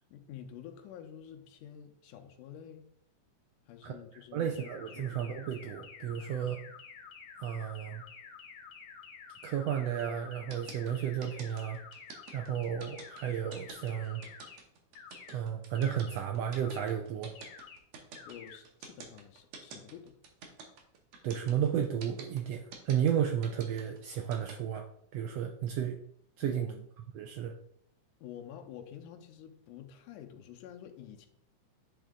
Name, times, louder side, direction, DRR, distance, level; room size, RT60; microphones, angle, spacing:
voice 1, 0.1-2.9 3.7-5.2 6.2-6.6 18.3-20.2 26.4-26.8 28.2-31.3, left 9 dB, 90° left, 4 dB, 2.2 m, -49 dB
voice 2, 4.3-6.6 7.4-8.0 9.4-11.8 12.3-14.2 15.3-17.3 21.2-24.8 25.1-26.0 26.4-26.7 27.1-27.5, right 9 dB, 85° right, 4 dB, 1.4 m, -33 dB
sound 1, 4.6-14.6 15.0-15.4 15.8-16.2 16.6-17.0 17.4-17.8 18.2-18.6, left 6 dB, 70° left, 1.3 m, -50 dB
sound 2, 10.5-24.5, right 5 dB, 65° right, 2.1 m, -48 dB
10.0 x 3.6 x 3.7 m, 0.68 s
omnidirectional pair, 3.5 m